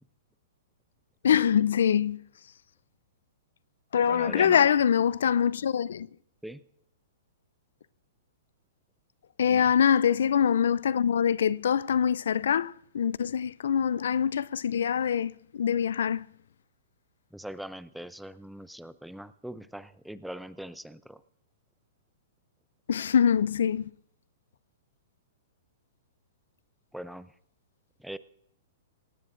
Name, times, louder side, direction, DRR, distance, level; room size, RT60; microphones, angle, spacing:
voice 1, 1.2-2.2 3.9-6.1 9.4-16.3 22.9-23.9, left 8 dB, 75° left, 0.4 m, -24 dB
voice 2, 4.1-4.6 6.4-6.6 9.5-9.7 17.3-21.2 26.9-27.3 28.0-28.2, right 1 dB, ahead, 0.5 m, -41 dB
17.5 x 17.0 x 2.5 m
hypercardioid pair, 130°, 0 cm